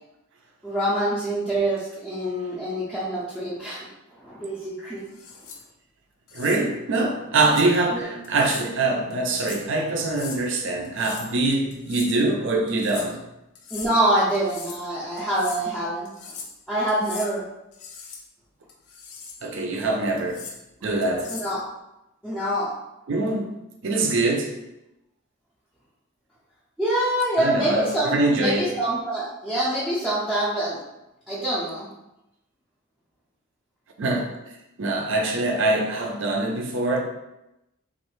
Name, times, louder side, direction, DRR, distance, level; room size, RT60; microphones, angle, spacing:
voice 1, 0.6-3.9 4.2-5.0 7.9-8.0 13.7-16.1 16.7-17.4 21.3-21.6 22.2-22.7 26.8-30.8 31.3-31.9, right 1 dB, 5° right, -10 dB, 0.5 m, -25 dB
sound 1, 5.1-5.6 6.3-6.6 7.4-7.7 8.2-8.7 9.1-9.7 10.0-10.4 10.8-11.3 11.7-12.2 12.7-13.1 13.6-13.9 14.3-14.8 15.2-15.6 16.1-16.6 16.9-17.3 17.7-18.2 18.7-19.4 20.2-20.6 21.0-21.5, left 5 dB, 75° left, 0.5 m, -39 dB
voice 2, 6.3-13.2 19.4-20.5 20.8-21.3 23.1-23.5 23.8-24.5 27.4-28.7 34.0-34.3 34.8-37.0, right 2 dB, 60° right, 2 dB, 0.5 m, -24 dB
3.1 x 2.5 x 3.1 m, 0.91 s
head